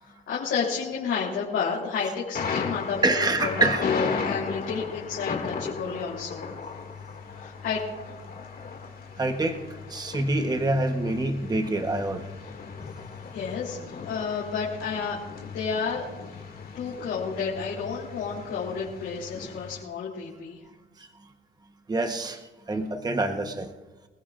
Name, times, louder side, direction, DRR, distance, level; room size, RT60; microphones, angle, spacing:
voice 1, 0.0-3.3 3.6-6.5 7.3-7.8 13.3-15.2 15.4-16.0 16.7-20.6, left 5 dB, 75° left, -6 dB, 3.6 m, -31 dB
Thunder, 2.3-19.8, left 5 dB, 50° left, 2.3 m, -36 dB
voice 2, 3.0-3.8 9.2-9.6 9.9-12.2 21.9-22.4 22.7-23.7, right 2 dB, 20° right, 6 dB, 1.1 m, -26 dB
25.5 x 15.0 x 2.5 m, 1.2 s
cardioid pair, 90°, 20 cm